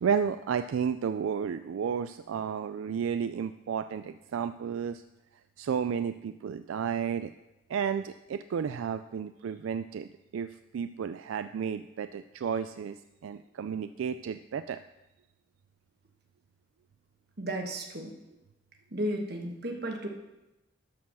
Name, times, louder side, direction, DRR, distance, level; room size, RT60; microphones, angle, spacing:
voice 1, 0.0-5.0 5.6-7.3 7.7-10.5 10.7-13.0 13.2-14.8, right 7 dB, 80° right, 11 dB, 0.3 m, -32 dB
voice 2, 17.4-18.1 18.9-20.1, right 1 dB, 50° right, 2 dB, 1.4 m, -33 dB
12.5 x 4.6 x 6.2 m, 0.98 s
head